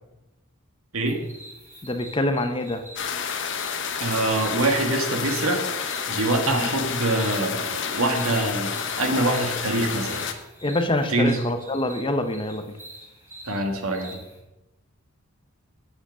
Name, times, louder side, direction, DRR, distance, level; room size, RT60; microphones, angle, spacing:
sound 1, 1.1-14.4, right 1 dB, 10° right, 3.3 m, -46 dB
voice 1, 1.8-2.8 6.5-6.7 10.6-12.6, left 1 dB, 20° left, 8 dB, 0.6 m, -25 dB
sound 2, 3.0-10.3, left 7 dB, 55° left, 0.9 m, -30 dB
voice 2, 4.0-5.6 6.1-10.3 11.1-11.4 13.4-14.2, right 2 dB, 75° right, 4 dB, 1.8 m, -24 dB
8.8 x 7.7 x 6.1 m, 0.96 s
head